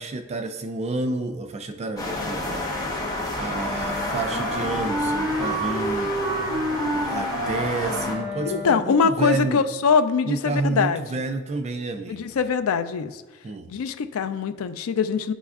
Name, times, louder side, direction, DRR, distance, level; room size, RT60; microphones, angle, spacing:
voice 1, 0.0-3.0 3.4-6.2 6.9-9.6 10.3-12.4 13.4-13.7, right 3 dB, 30° right, 7 dB, 0.3 m, -30 dB
sound 1, 2.0-8.1, left 2 dB, 15° left, 1.1 m, -30 dB
Wind instrument woodwind instrument, 3.5-9.0, right 1 dB, 10° right, 1.3 m, -29 dB
voice 2, 8.5-11.2 12.1-13.2 13.7-15.3, left 6 dB, 70° left, 10 dB, 0.4 m, -23 dB
9.8 x 4.1 x 2.4 m, 1.3 s
head